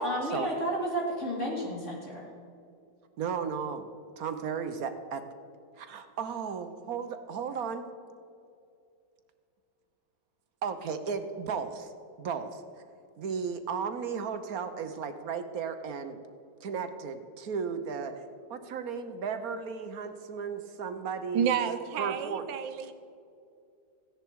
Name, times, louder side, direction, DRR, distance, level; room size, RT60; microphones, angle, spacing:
voice 1, 0.0-2.3, right 1 dB, 40° left, -2 dB, 3.0 m, -31 dB
voice 2, 3.2-3.9 4.2-5.2 5.8-7.9 10.6-11.9 12.2-12.6 13.2-16.2 16.6-18.1 18.5-21.6 22.0-22.5, right 6 dB, 60° right, 9 dB, 1.2 m, -35 dB
voice 3, 21.3-22.9, right 8 dB, 85° right, 10 dB, 1.6 m, -30 dB
15.5 x 10.0 x 4.7 m, 2.5 s
omnidirectional pair, 2.0 m